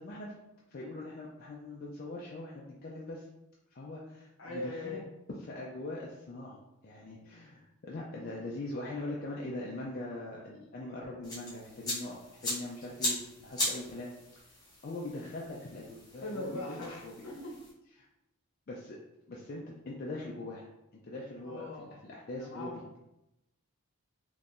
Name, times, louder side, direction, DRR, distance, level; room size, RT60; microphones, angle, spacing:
voice 1, 0.0-0.3 0.7-3.2 3.7-5.0 5.4-14.2 14.8-17.1 18.7-19.0 19.3-20.7 21.0-21.7 22.0-22.7, left 2 dB, 40° left, -3 dB, 0.4 m, -42 dB
voice 2, 4.4-5.1 16.2-17.6 21.4-22.0 22.4-22.8, left 2 dB, 65° left, -1 dB, 0.8 m, -40 dB
sound 1, 11.2-17.7, left 1 dB, 15° left, 1.0 m, -39 dB
3.7 x 2.8 x 2.5 m, 0.90 s
head